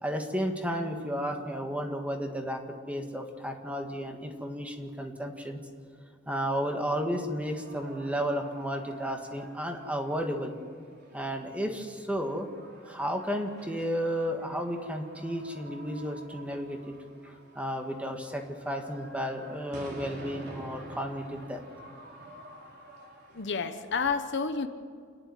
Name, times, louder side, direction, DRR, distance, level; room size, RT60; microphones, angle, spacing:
voice 1, 0.0-5.6 6.3-10.5 11.1-12.5 12.9-17.0 17.2-21.6, equal, 5° right, 3 dB, 2.0 m, -33 dB
sound 1, 7.4-24.0, right 1 dB, 55° right, 3.8 m, -49 dB
voice 2, 23.3-24.7, left 5 dB, 60° left, 8 dB, 1.1 m, -30 dB
29.0 x 10.5 x 9.6 m, 2.1 s
head